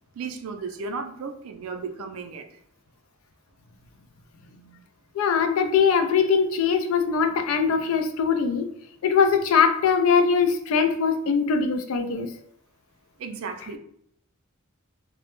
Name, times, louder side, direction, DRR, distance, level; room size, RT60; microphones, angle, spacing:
voice 1, 0.2-2.5 13.2-13.8, right 4 dB, 85° right, 6 dB, 0.4 m, -34 dB
voice 2, 5.2-8.7 9.0-12.3, left 6 dB, 75° left, 7 dB, 0.3 m, -21 dB
2.1 x 2.0 x 2.9 m, 0.69 s
head